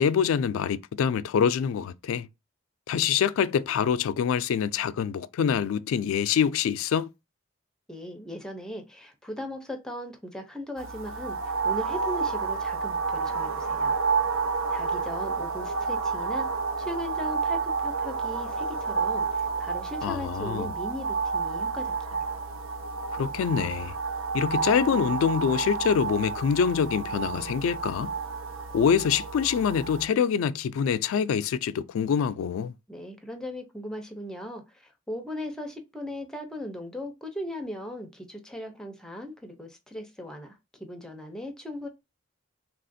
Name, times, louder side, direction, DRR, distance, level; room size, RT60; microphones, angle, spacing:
voice 1, 0.0-2.3 2.9-7.1 20.0-20.7 23.1-23.9 24.3-28.1 28.7-32.7, left 7 dB, 85° left, 0.3 m, -25 dB
voice 2, 7.9-14.0 14.7-16.5 16.8-22.3 32.9-41.9, left 1 dB, 5° left, 0.5 m, -38 dB
sound 1, 10.8-30.1, right 5 dB, 75° right, 0.6 m, -30 dB
3.4 x 2.4 x 2.5 m
head